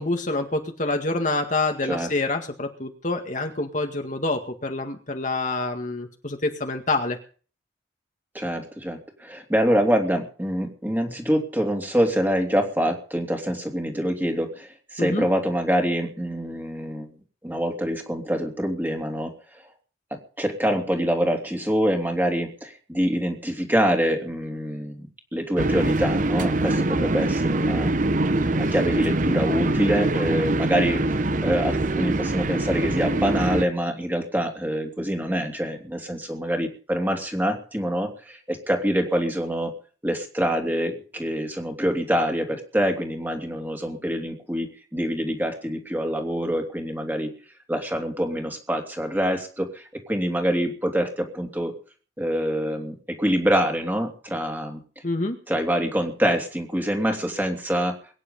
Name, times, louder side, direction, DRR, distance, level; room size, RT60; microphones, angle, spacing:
voice 1, 0.0-7.2 15.0-15.3 55.0-55.4, left 2 dB, 40° left, 4 dB, 1.9 m, -27 dB
voice 2, 8.3-17.1 17.4-19.6 20.1-25.1 25.3-27.9 28.5-31.0 31.4-39.7 40.0-47.3 47.7-51.7 52.2-54.8 55.5-57.9, equal, 10° right, 3 dB, 2.9 m, -25 dB
sound 1, 25.6-33.6, right 2 dB, 45° right, 0.9 m, -23 dB
22.0 x 10.0 x 5.4 m, 0.40 s
head